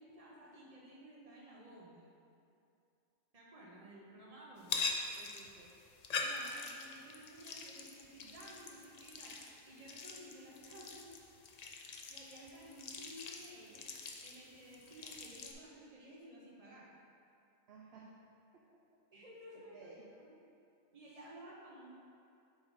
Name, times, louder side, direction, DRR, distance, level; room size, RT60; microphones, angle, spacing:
voice 1, 0.0-2.0 3.3-4.8 6.2-11.1 12.1-13.9 14.2-16.9 19.1-19.9 20.2-20.3 20.9-21.9, right 1 dB, 30° right, -5 dB, 1.1 m, -54 dB
sound 1, 4.6-15.5, left 4 dB, 65° left, 0.4 m, -44 dB
voice 2, 5.2-5.7 17.7-18.1 18.5-19.0 19.5-20.1, right 5 dB, 60° right, -2 dB, 0.8 m, -57 dB
7.6 x 4.2 x 4.0 m, 2.6 s
omnidirectional pair, 1.3 m